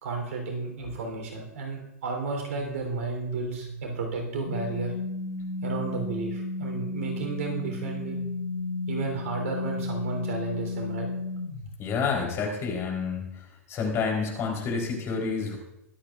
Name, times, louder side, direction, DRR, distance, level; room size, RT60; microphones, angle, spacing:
voice 1, 0.0-5.0 5.6-8.2 8.9-11.1, right 4 dB, 65° right, 2 dB, 3.5 m, -33 dB
sound 1, 2.5-11.8, left 3 dB, 75° left, 1.7 m, -34 dB
voice 2, 11.8-13.3 13.7-15.6, left 5 dB, 35° left, 1 dB, 3.8 m, -28 dB
22.5 x 8.7 x 2.5 m, 0.85 s
hypercardioid pair, 105°, 8 cm